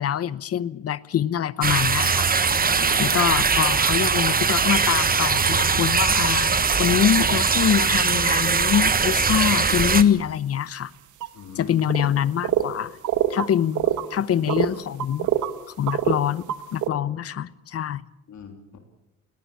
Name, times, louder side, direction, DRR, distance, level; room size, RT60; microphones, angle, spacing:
voice 1, 0.0-2.3 3.0-10.9 11.6-13.0 13.3-15.3 15.7-16.4 16.7-18.0, left 9 dB, 50° left, 0.9 m, -24 dB
sound 1, 1.6-10.0, right 5 dB, 30° right, 1.3 m, -21 dB
voice 2, 2.5-3.2 11.3-11.8 14.1-14.2 18.3-18.8, left 5 dB, 70° left, 3.2 m, -41 dB
sound 2, 6.9-7.0 7.4-8.7 9.3-9.6 9.9-10.0 11.2-11.3 11.8-12.1 12.4-12.6 13.0-14.1 14.5-15.6 15.9-16.9, right 12 dB, 80° right, 1.5 m, -25 dB
21.5 x 18.0 x 8.4 m
cardioid pair, 90°, 30 cm